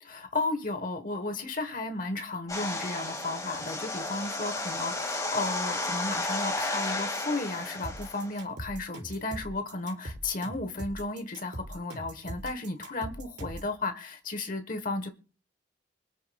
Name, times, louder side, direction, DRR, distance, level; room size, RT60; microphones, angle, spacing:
voice 1, 0.0-15.1, left 2 dB, 45° left, 1.2 m, -34 dB
sound 1, 2.5-8.4, left 2 dB, 20° left, 2.1 m, -33 dB
sound 2, 7.8-13.7, right 1 dB, 70° right, 4.5 m, -41 dB
25.0 x 8.7 x 2.3 m
head